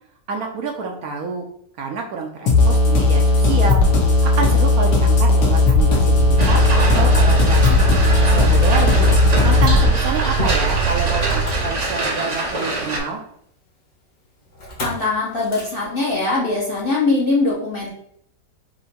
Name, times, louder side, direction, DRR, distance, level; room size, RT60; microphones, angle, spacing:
voice 1, 0.3-1.4 1.8-3.8 4.1-7.8 8.2-9.1 9.4-13.2, right 4 dB, 70° right, 2 dB, 1.0 m, -28 dB
sound 1, 2.5-9.9, left 2 dB, 75° left, 1.5 m, -15 dB
Motor vehicle (road), 5.9-12.3 14.6-15.0 15.4-15.7, right 4 dB, 60° left, 1.8 m, -23 dB
sound 2, 6.4-13.0, right 2 dB, 50° right, 0.5 m, -25 dB
voice 2, 14.8-17.9, left 3 dB, 40° left, -5 dB, 0.8 m, -21 dB
4.4 x 2.7 x 4.1 m, 0.68 s
omnidirectional pair, 1.8 m